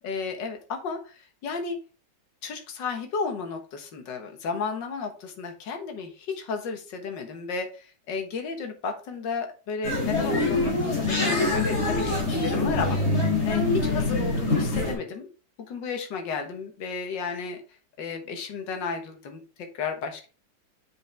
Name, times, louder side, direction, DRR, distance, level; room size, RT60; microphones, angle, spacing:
voice 1, 0.0-1.8 2.4-15.3 15.6-17.6 18.0-20.3, left 5 dB, 75° left, 4 dB, 2.0 m, -33 dB
sound 1, 9.8-14.9, left 2 dB, 60° left, 3.8 m, -24 dB
7.7 x 6.5 x 3.4 m, 0.34 s
omnidirectional pair, 2.0 m